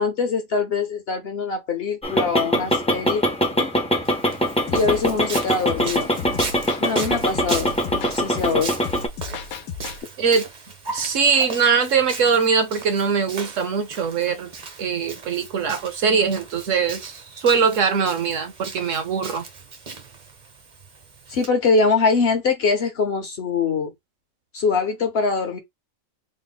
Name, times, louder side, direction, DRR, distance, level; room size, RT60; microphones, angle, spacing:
voice 1, 0.0-3.2 3.6-3.7 4.7-6.1 6.8-8.8 21.3-23.9 24.5-25.6, left 4 dB, 55° left, 0.8 m, -23 dB
sound 1, 2.0-9.1, equal, 10° left, 0.3 m, -23 dB
Walk footsteps, 4.0-21.5, right 4 dB, 40° right, 0.7 m, -38 dB
sound 2, 4.7-10.0, left 6 dB, 90° left, 1.1 m, -34 dB
voice 2, 10.9-14.5 14.8-19.4, right 6 dB, 65° right, 1.1 m, -21 dB
3.6 x 2.1 x 3.8 m
omnidirectional pair, 1.5 m